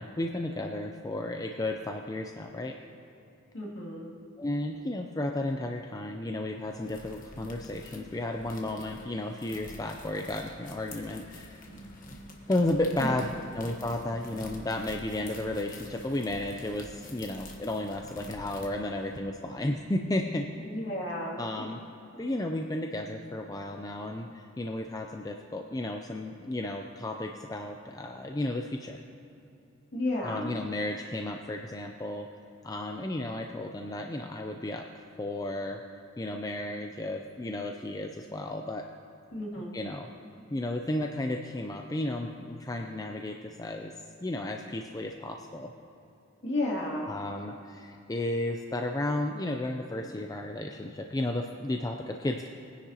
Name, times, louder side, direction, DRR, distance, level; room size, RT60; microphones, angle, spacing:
voice 1, 0.0-2.7 4.4-11.6 12.5-20.5 21.4-21.8 22.2-29.0 30.2-32.3 32.6-34.9 35.2-35.8 36.2-38.8 39.7-40.1 40.5-43.9 44.2-45.7 47.0-52.5, left 1 dB, 15° left, 2 dB, 0.4 m, -33 dB
voice 2, 3.5-4.1 13.0-13.1 20.6-21.4 22.1-22.3 29.9-30.6 39.3-39.9 46.4-47.1, left 1 dB, 55° left, -4 dB, 2.5 m, -32 dB
sound 1, 6.6-19.2, left 1 dB, 40° left, 1.3 m, -47 dB
20.5 x 10.0 x 2.9 m, 2.8 s
head